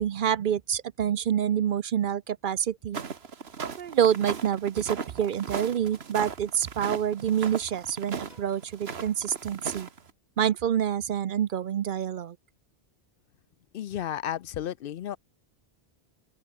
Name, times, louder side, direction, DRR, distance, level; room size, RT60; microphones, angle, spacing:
voice 1, 0.0-3.0 3.6-9.9 10.4-12.4, right 9 dB, 60° right, 0.7 m, -27 dB
sound 1, 2.9-10.1, right 6 dB, 75° right, 1.7 m, -37 dB
Piano, 8.3-10.6, left 1 dB, 40° left, 6.7 m, -63 dB
voice 2, 13.7-15.2, left 10 dB, 65° left, 0.7 m, -33 dB
open air
omnidirectional pair, 1.0 m